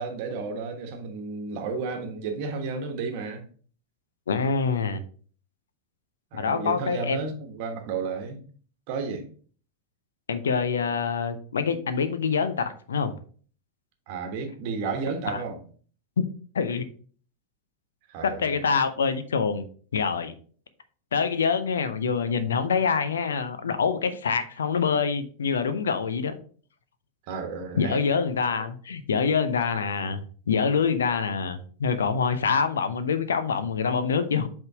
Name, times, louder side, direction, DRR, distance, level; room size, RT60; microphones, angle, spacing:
voice 1, 0.0-3.4 6.3-8.4 8.9-9.3 14.1-15.6 18.1-18.6 27.3-28.0, right 4 dB, 45° right, 1.2 m, -32 dB
voice 2, 4.3-5.0 6.3-7.2 10.3-13.1 16.5-16.8 18.2-19.6 19.9-20.3 21.1-26.3 27.8-34.5, left 5 dB, 65° left, 0.7 m, -25 dB
8.0 x 3.6 x 3.6 m
figure-of-eight pair, 90°, 0 cm